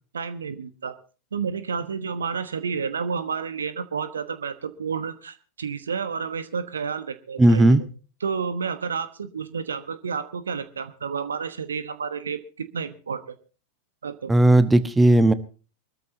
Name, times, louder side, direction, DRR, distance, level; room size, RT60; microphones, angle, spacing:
voice 1, 0.1-0.9 1.3-7.8 8.2-13.3 14.0-14.3, right 6 dB, 70° right, 12 dB, 1.1 m, -30 dB
voice 2, 7.4-7.8 14.3-15.3, right 1 dB, 10° right, 12 dB, 1.2 m, -16 dB
24.0 x 13.5 x 2.8 m, 0.36 s
figure-of-eight pair, 90°, 0 cm